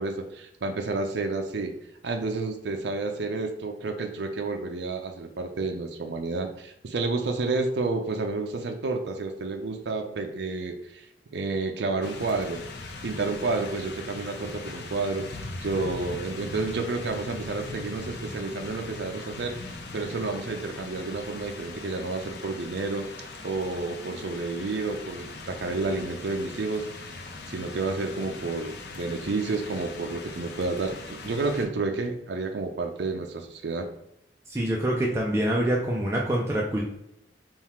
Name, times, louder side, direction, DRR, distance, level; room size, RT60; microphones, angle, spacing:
voice 1, 0.0-1.8 2.0-11.1 11.3-12.6 13.0-23.1 23.4-27.2 27.5-33.9, right 3 dB, 70° right, 4 dB, 0.5 m, -30 dB
sound 1, 12.0-31.7, left 3 dB, 65° left, 0.6 m, -40 dB
voice 2, 34.5-36.8, right 1 dB, 15° right, -3 dB, 0.5 m, -25 dB
3.7 x 2.4 x 4.3 m, 0.83 s
head